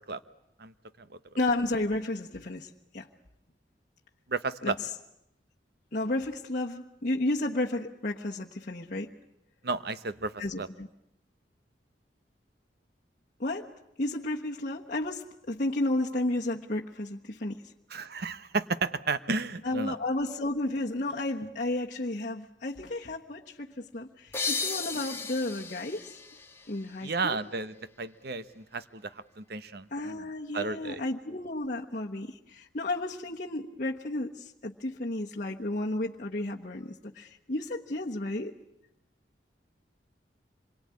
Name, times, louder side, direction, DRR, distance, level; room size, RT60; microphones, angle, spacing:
voice 1, 1.4-3.1 4.6-4.9 5.9-9.1 10.4-10.9 13.4-13.7 14.0-17.6 19.6-26.2 26.7-27.4 29.9-38.5, left 2 dB, 50° left, -2 dB, 1.2 m, -32 dB
voice 2, 4.3-4.8 9.6-10.7 17.9-20.0 27.0-30.2 30.5-31.0, right 4 dB, 65° right, 13 dB, 1.1 m, -33 dB
sound 1, 24.3-27.8, left 4 dB, 15° left, 1.6 m, -36 dB
26.5 x 22.5 x 9.6 m, 0.80 s
head